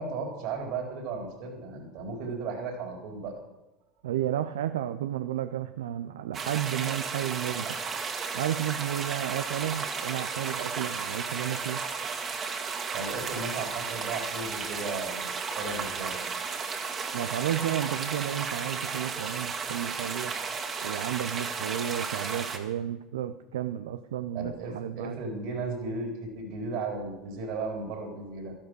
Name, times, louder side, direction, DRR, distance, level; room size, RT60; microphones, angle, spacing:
voice 1, 0.0-3.4 12.9-16.2 24.3-28.5, right 3 dB, 65° right, 2 dB, 3.9 m, -35 dB
voice 2, 4.0-7.8 8.3-11.8 17.1-20.4 20.8-25.2, right 11 dB, 80° right, 10 dB, 0.5 m, -32 dB
sound 1, 6.3-22.6, right 5 dB, 40° right, 2.0 m, -34 dB
13.0 x 12.0 x 6.3 m, 1.0 s
hypercardioid pair, 75°, 0 cm